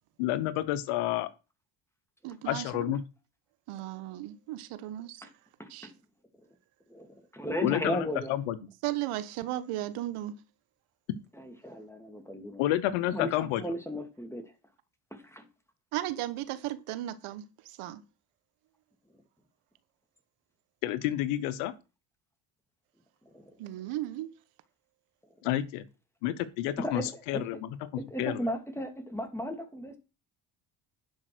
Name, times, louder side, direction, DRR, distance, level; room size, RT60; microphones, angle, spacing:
voice 1, 0.2-1.3 2.5-3.0 7.6-8.6 12.6-13.6 20.8-21.7 25.4-25.8 26.2-27.7 28.2-28.4, left 13 dB, 85° left, 1.1 m, -29 dB
voice 2, 2.2-2.9 3.7-5.3 5.7-5.9 8.8-10.4 13.4-13.5 15.9-18.0 23.6-24.3, right 14 dB, 75° right, 1.3 m, -36 dB
voice 3, 5.6-6.0 6.9-8.3 11.3-12.6 13.1-14.5 15.1-15.5 23.3-23.5 26.8-27.4 28.0-30.0, equal, 5° left, 2.4 m, -36 dB
11.0 x 5.3 x 6.1 m
supercardioid pair, 70°, 50 cm